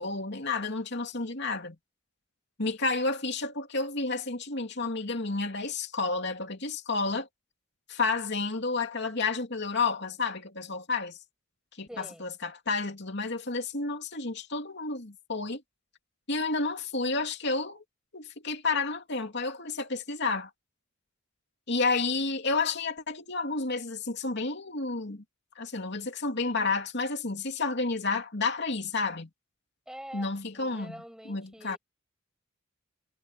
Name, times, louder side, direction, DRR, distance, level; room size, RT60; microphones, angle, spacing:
voice 1, 0.0-1.8 2.6-7.3 7.9-11.2 11.8-15.6 16.3-17.8 18.1-20.5 21.7-25.2 25.5-29.3 30.1-31.0 31.3-31.8, left 3 dB, 60° left, 2.9 m, -31 dB
voice 2, 11.9-12.3 29.9-31.8, equal, 5° right, 7.1 m, -46 dB
head